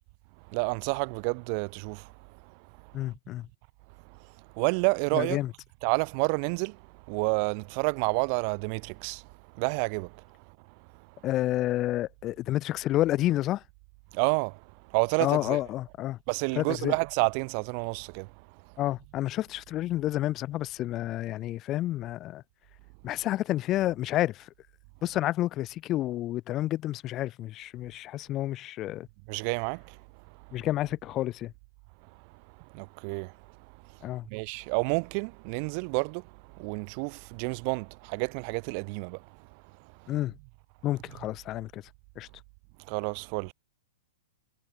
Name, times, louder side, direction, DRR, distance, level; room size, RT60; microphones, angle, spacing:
voice 1, 0.5-2.1 4.5-5.4 5.8-6.8 7.1-9.3 9.5-10.2 14.1-14.6 14.9-15.6 16.3-18.3 29.3-30.0 32.7-33.3 34.3-36.3 36.5-39.2 42.9-43.5, right 39 dB, 45° right, 1.5 m, -29 dB
voice 2, 2.9-3.4 5.1-5.5 11.2-13.6 15.2-16.2 16.6-16.9 18.8-22.4 23.0-24.4 25.0-29.1 30.5-31.5 34.0-34.2 40.1-40.3 40.8-41.8 42.2-42.3, left 15 dB, 30° left, 1.1 m, -29 dB
hypercardioid pair, 130°, 0 cm